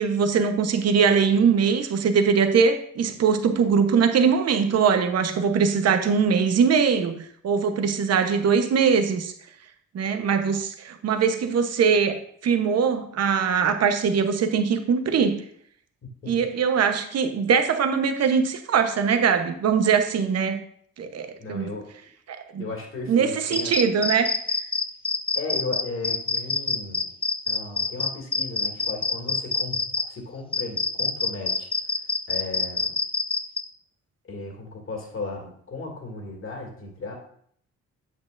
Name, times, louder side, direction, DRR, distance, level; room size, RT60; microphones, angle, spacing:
voice 1, 0.0-9.3 9.9-15.4 16.3-20.6 21.0-21.7 22.5-22.7 23.1-24.3, right 6 dB, 55° right, 7 dB, 1.0 m, -22 dB
voice 2, 21.4-21.9 22.6-23.8 25.3-27.1 27.5-29.8 30.1-31.7 32.3-33.0 34.2-37.2, left 3 dB, 45° left, 1 dB, 2.3 m, -35 dB
sound 1, 23.5-30.1 30.5-33.6, left 4 dB, 20° left, 0.5 m, -26 dB
8.5 x 7.5 x 2.5 m, 0.63 s
cardioid pair, 90°, 30 cm